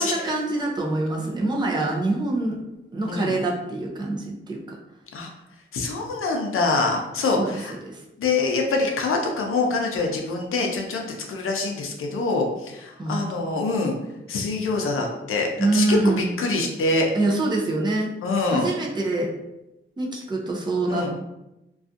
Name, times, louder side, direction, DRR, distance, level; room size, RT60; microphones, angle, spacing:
voice 1, 0.0-2.6 2.9-4.8 7.3-8.0 13.0-13.2 15.6-16.3 17.1-18.1 18.5-19.3 20.0-21.1, right 2 dB, 20° right, -1 dB, 0.5 m, -25 dB
voice 2, 5.7-7.8 8.2-13.9 14.3-17.1 18.2-18.7 20.9-21.1, left 3 dB, 80° left, 1 dB, 0.5 m, -25 dB
2.5 x 2.3 x 2.4 m, 0.92 s
wide cardioid pair, 125°, 21 cm